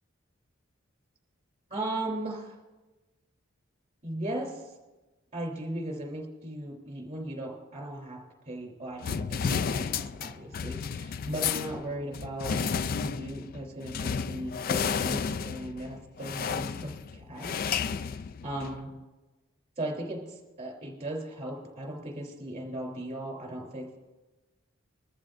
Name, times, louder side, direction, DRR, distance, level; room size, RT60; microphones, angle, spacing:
voice 1, 1.7-2.6 4.0-4.7 5.3-18.1 18.4-18.9 19.8-24.0, right 1 dB, 30° right, 1 dB, 3.4 m, -37 dB
sound 1, 9.0-18.8, left 6 dB, 45° left, 0.3 m, -32 dB
21.5 x 14.0 x 2.6 m, 1.1 s
head